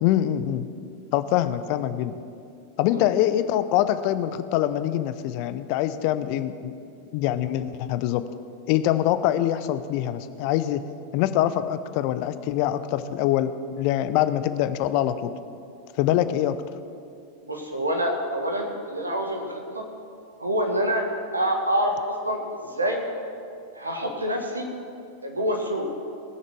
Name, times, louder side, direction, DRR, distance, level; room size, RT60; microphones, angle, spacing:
voice 1, 0.0-0.7 1.1-2.2 2.8-6.7 7.1-8.2 8.7-10.8 11.1-15.3 16.0-16.6, left 12 dB, 45° left, 12 dB, 0.6 m, -24 dB
voice 2, 17.4-19.8 20.4-21.0 21.3-23.0 23.7-24.7 25.2-25.9, equal, 80° right, 2 dB, 1.7 m, -26 dB
19.0 x 6.6 x 6.1 m, 2.5 s
figure-of-eight pair, 90°, 0 cm